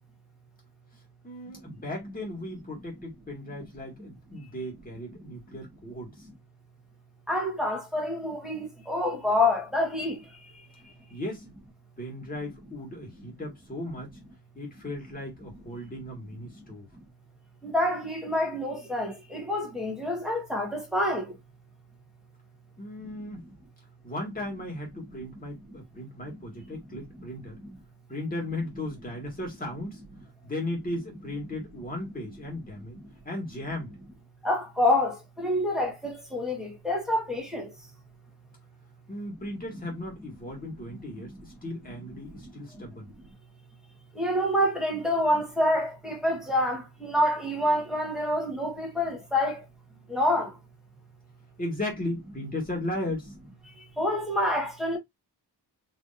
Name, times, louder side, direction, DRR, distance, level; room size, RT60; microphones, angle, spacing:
voice 1, 1.2-6.3 11.1-11.5 12.0-14.2 14.6-16.9 22.8-23.5 24.0-27.6 28.1-30.0 30.4-33.0 33.3-33.9 39.1-43.1 51.6-53.3, left 1 dB, 20° left, 1.8 m, -36 dB
voice 2, 7.3-10.2 17.6-21.2 34.4-37.7 44.2-49.6 50.1-50.5 54.0-55.0, left 1 dB, ahead, 1.2 m, -27 dB
4.2 x 3.3 x 2.5 m
wide cardioid pair, 175°, 42 cm